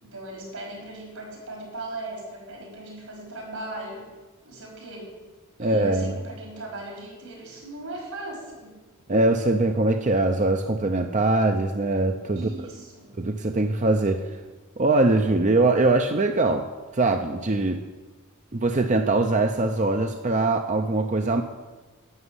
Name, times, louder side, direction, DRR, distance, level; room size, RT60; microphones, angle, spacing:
voice 1, 0.0-4.1 4.5-5.2 5.6-8.8 12.4-13.1, right 2 dB, 85° right, 0 dB, 5.5 m, -38 dB
voice 2, 5.6-6.2 9.1-12.5 13.2-14.2 14.8-16.6 16.9-17.8 18.5-21.4, right 2 dB, 35° right, 5 dB, 0.7 m, -22 dB
11.5 x 7.2 x 9.7 m, 1.2 s
head